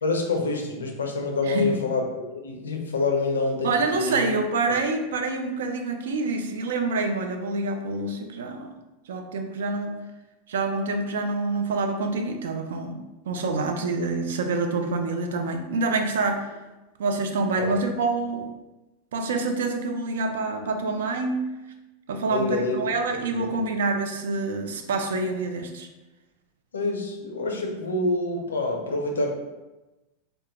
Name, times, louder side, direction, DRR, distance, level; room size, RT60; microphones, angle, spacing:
voice 1, 0.0-4.3 4.7-4.8 17.6-17.7 22.3-23.5 26.7-29.3, left 3 dB, 85° left, 2 dB, 0.4 m, -27 dB
voice 2, 1.4-1.8 3.6-8.7 9.1-10.0 10.5-16.5 17.0-18.5 19.1-21.4 22.1-25.9, right 3 dB, 75° right, 5 dB, 0.3 m, -27 dB
2.1 x 2.1 x 2.8 m, 1.1 s
hypercardioid pair, 95°, 0 cm